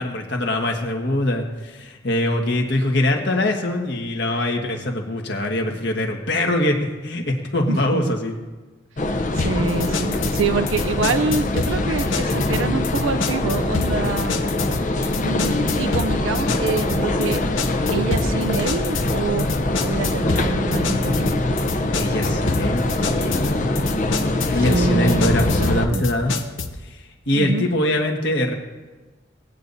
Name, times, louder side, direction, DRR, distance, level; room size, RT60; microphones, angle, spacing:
voice 1, 0.0-8.4 21.9-23.7 24.5-26.3 26.9-27.0 27.3-28.5, left 1 dB, 60° left, 2 dB, 1.5 m, -23 dB
voice 2, 7.7-8.1 9.3-14.4 15.2-17.4 17.9-21.3 24.7-26.0 27.3-27.7, right 4 dB, 85° right, 9 dB, 0.5 m, -26 dB
sound 1, 9.0-25.9, left 2 dB, 40° left, 0.6 m, -23 dB
sound 2, 9.4-26.8, left 4 dB, 80° left, 0.9 m, -29 dB
19.5 x 8.4 x 2.7 m, 1.2 s
head